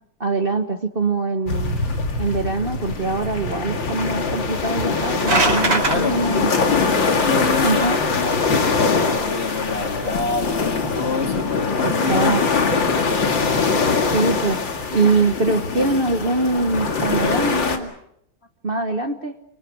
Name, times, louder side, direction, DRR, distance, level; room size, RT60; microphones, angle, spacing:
voice 1, 0.2-1.8 2.2-6.9 7.6-8.0 11.8-12.7 14.1-14.6 14.9-17.9 18.6-19.3, right 3 dB, 35° right, 7 dB, 1.2 m, -23 dB
sound 1, 1.5-17.8, left 4 dB, 85° left, 3.0 m, -22 dB
sound 2, 4.9-6.0, right 2 dB, 85° right, 4.8 m, -20 dB
voice 2, 5.8-6.3 7.2-8.8 9.2-12.4, left 3 dB, 35° left, 6 dB, 1.8 m, -27 dB
30.0 x 25.5 x 6.3 m, 0.75 s
omnidirectional pair, 2.0 m